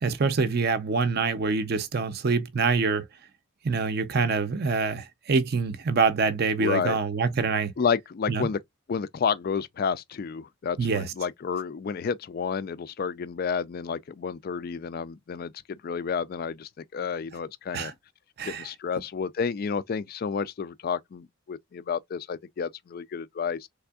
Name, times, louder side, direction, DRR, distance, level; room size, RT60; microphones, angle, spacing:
voice 1, 0.0-3.1 3.6-7.7 8.3-8.5 10.8-11.1 17.7-17.9 18.4-18.7, right 4 dB, 45° right, 0.5 m, -25 dB
voice 2, 6.6-7.0 7.8-8.6 8.9-17.9 18.4-23.7, left 6 dB, 45° left, 0.3 m, -30 dB
3.4 x 3.4 x 2.3 m
head